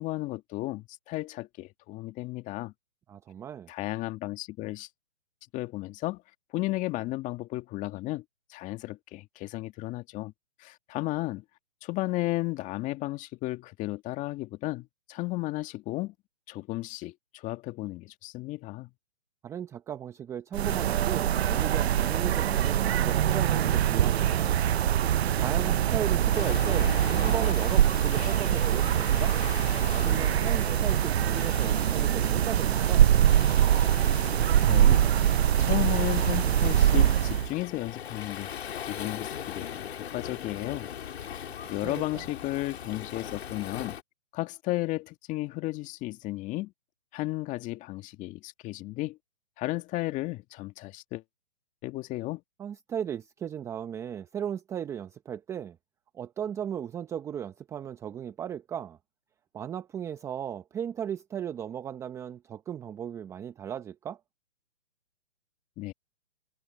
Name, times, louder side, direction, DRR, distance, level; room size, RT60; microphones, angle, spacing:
voice 1, 0.0-2.7 3.7-4.9 5.5-6.2 6.5-8.2 8.5-10.3 10.6-11.4 11.8-16.1 16.5-18.9 34.6-38.5 38.8-40.9 41.7-44.0 44.3-46.7 47.1-49.2 49.6-51.2 51.8-52.4 65.8-65.9, left 18 dB, 20° left, 2.0 m, -34 dB
voice 2, 3.1-3.7 19.4-24.6 25.4-29.4 29.9-33.1 41.8-42.3 52.6-55.8 56.1-59.0 59.5-64.2, right 9 dB, 10° right, 0.8 m, -36 dB
sound 1, 20.5-37.5, right 10 dB, 60° right, 0.7 m, -23 dB
Waves surf, 26.3-44.0, left 9 dB, 60° left, 4.2 m, -40 dB
hypercardioid pair, 145°, 36 cm